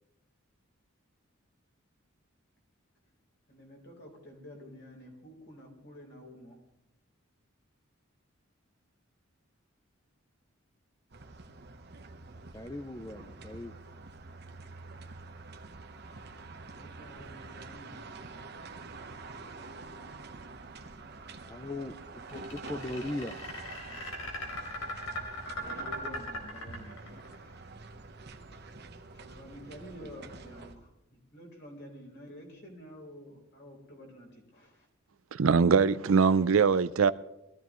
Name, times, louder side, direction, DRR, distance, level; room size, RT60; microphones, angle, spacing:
voice 1, 3.5-6.6 16.7-18.5 25.6-27.5 29.2-34.9, equal, 55° left, 4.1 m, -50 dB
sound 1, 11.1-30.7, right 3 dB, 50° right, 1.0 m, -47 dB
voice 2, 12.5-13.8 21.4-23.4, left 2 dB, 15° left, 0.5 m, -39 dB
sound 2, 22.3-27.3, left 1 dB, 85° left, 3.5 m, -38 dB
voice 3, 35.3-37.1, right 5 dB, 75° right, 0.5 m, -22 dB
22.0 x 14.5 x 3.1 m
head